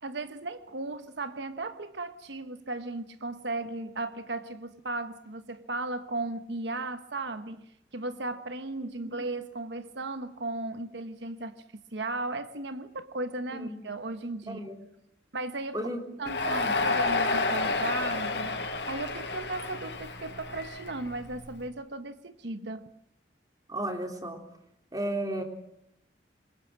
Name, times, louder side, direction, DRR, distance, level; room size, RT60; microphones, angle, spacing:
voice 1, 0.0-11.6 11.9-14.6 15.3-15.9 16.2-22.9, right 2 dB, 80° right, 1.1 m, -36 dB
voice 2, 14.4-14.8 15.7-16.0 16.5-16.8 23.7-24.4 24.9-25.4, right 1 dB, 20° right, 3.5 m, -34 dB
Crowd, 16.2-21.4, left 3 dB, 70° left, 5.0 m, -30 dB
27.5 x 24.0 x 7.6 m
head